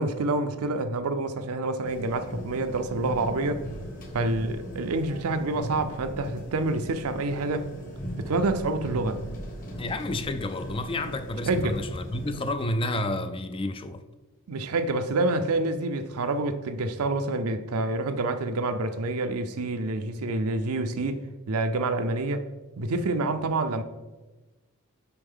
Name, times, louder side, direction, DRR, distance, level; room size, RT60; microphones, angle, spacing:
voice 1, 0.0-3.6 4.1-7.7 8.2-9.2 11.5-11.8 14.5-21.2 21.5-22.4 22.8-23.8, right 2 dB, 75° right, 0.5 m, -27 dB
sound 1, 1.8-12.5, equal, 40° left, 1.4 m, -38 dB
voice 2, 9.8-14.0, left 1 dB, 25° left, 0.3 m, -30 dB
6.8 x 5.0 x 3.6 m
head